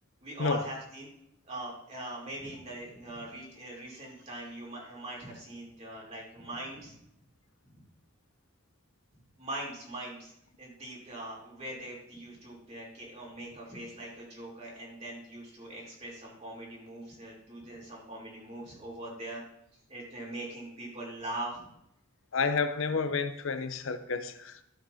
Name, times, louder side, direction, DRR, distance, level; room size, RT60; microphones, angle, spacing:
voice 1, 0.2-1.1 1.4-6.9 9.4-10.3 10.6-19.4 19.9-21.6, right 1 dB, 30° right, 3.2 m, -41 dB
voice 2, 22.3-24.6, left 4 dB, 70° left, 0.6 m, -30 dB
12.5 x 8.0 x 2.7 m
head